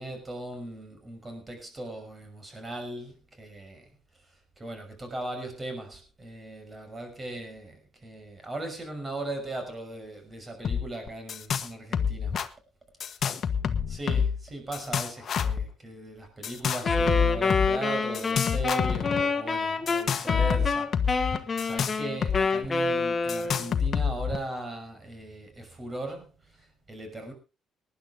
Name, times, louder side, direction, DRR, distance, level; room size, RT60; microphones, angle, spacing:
voice 1, 0.0-3.9 4.6-12.4 13.9-27.3, right 2 dB, 25° right, 6.0 m, -38 dB
sound 1, 10.6-10.8 11.1-11.7 11.9-12.5 13.0-14.4 14.7-15.6 16.4-17.7 18.1-19.2 19.9-22.4 22.6-22.7 23.3-24.4, left 7 dB, 55° left, 1.3 m, -27 dB
Wind instrument woodwind instrument, 16.8-23.8, left 4 dB, 30° left, 2.0 m, -27 dB
19.0 x 10.5 x 3.7 m
cardioid pair, 95°, 0 cm